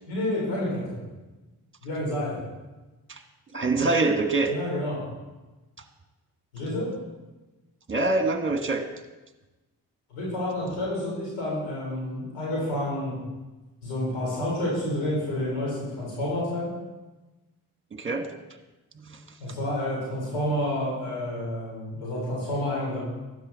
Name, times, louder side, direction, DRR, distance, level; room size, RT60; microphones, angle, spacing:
voice 1, 0.1-1.0 1.8-2.4 4.5-5.0 6.5-6.9 10.1-13.2 13.8-16.7 19.4-23.0, left 1 dB, 90° left, -5 dB, 3.9 m, -29 dB
voice 2, 3.5-4.5 7.9-8.8 17.9-18.3 19.1-19.2, right 3 dB, 25° right, 6 dB, 1.5 m, -24 dB
12.0 x 9.2 x 4.1 m, 1.1 s
hypercardioid pair, 40°, 45 cm